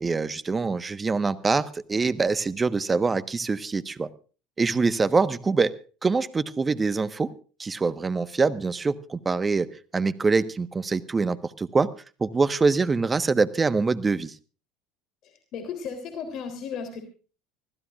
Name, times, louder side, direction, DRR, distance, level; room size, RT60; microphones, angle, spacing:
voice 1, 0.0-4.1 4.6-5.7 6.0-7.3 7.6-11.9 12.2-14.3, right 4 dB, 25° right, 13 dB, 1.3 m, -24 dB
voice 2, 15.2-17.0, left 6 dB, 55° left, 6 dB, 3.5 m, -35 dB
25.0 x 15.5 x 2.5 m, 0.37 s
hypercardioid pair, 75°, 0 cm